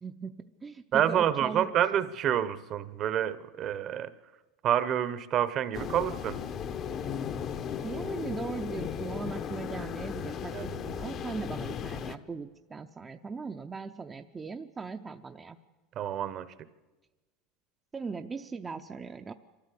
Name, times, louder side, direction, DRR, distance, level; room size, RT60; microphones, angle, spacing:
voice 1, 0.0-1.7 7.8-15.6 17.9-19.3, right 4 dB, 20° right, 5 dB, 0.6 m, -39 dB
voice 2, 0.9-4.1 4.6-6.4 10.5-10.6 16.0-16.5, right 10 dB, 40° right, 14 dB, 0.9 m, -28 dB
sound 1, 5.7-12.2, left 8 dB, 40° left, 0.9 m, -36 dB
24.0 x 13.5 x 8.4 m, 1.2 s
supercardioid pair, 125°, 0 cm